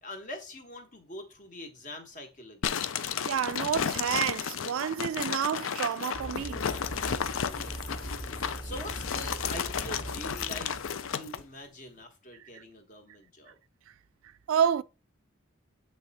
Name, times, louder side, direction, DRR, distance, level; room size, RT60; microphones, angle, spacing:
voice 1, 0.0-2.9 8.2-13.6, left 1 dB, 40° left, 1.3 m, -44 dB
sound 1, 2.6-11.4, left 7 dB, 75° left, 0.5 m, -33 dB
voice 2, 3.3-6.6 14.5-14.8, right 8 dB, 90° right, 0.3 m, -29 dB
sound 2, 6.1-11.1, right 1 dB, 25° left, 1.1 m, -40 dB
7.7 x 3.3 x 4.1 m
head